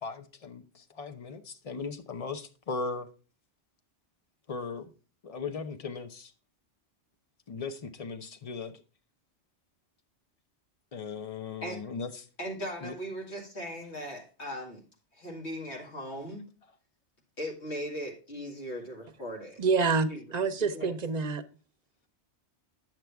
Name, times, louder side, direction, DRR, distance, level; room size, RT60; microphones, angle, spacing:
voice 1, 0.0-3.1 4.5-4.9 5.2-6.3 7.5-8.7 10.9-12.3 12.8-12.9, left 4 dB, 35° left, 0.7 m, -38 dB
voice 2, 12.4-14.8 15.1-16.4 17.4-19.6 20.1-20.3 20.6-20.9, equal, 70° left, 2.5 m, -38 dB
voice 3, 19.6-21.4, right 4 dB, 40° right, 0.8 m, -27 dB
9.1 x 7.4 x 3.4 m
omnidirectional pair, 1.2 m